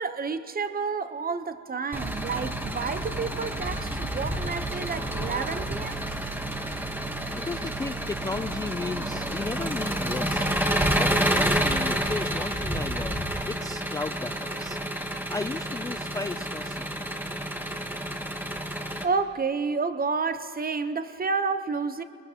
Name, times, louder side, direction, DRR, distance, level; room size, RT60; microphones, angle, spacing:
voice 1, 0.0-6.0 19.0-22.0, right 4 dB, 30° right, 11 dB, 0.8 m, -30 dB
Engine, 1.9-19.0, right 1 dB, 5° right, 1.1 m, -29 dB
voice 2, 7.3-10.4 10.9-14.8 15.3-17.1, left 3 dB, 10° left, 9 dB, 0.3 m, -35 dB
21.5 x 20.0 x 2.9 m, 2.2 s
cardioid pair, 90°, 30 cm